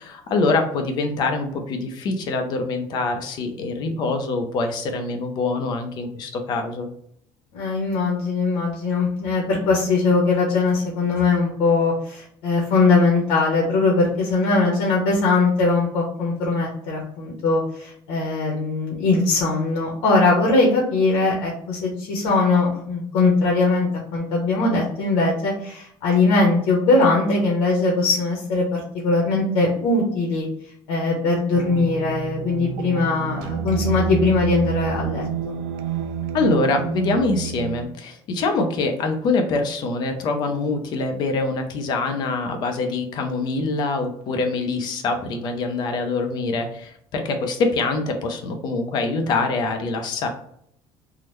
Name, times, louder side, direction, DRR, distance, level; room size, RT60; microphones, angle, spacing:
voice 1, 0.0-6.9 36.3-50.3, left 3 dB, 45° left, 5 dB, 0.5 m, -24 dB
voice 2, 7.5-30.5 30.9-35.6, left 3 dB, 85° left, -2 dB, 0.9 m, -20 dB
sound 1, 31.5-37.8, right 6 dB, 85° right, 0.4 m, -29 dB
3.6 x 2.1 x 3.0 m, 0.70 s
cardioid pair, 175°, 11 cm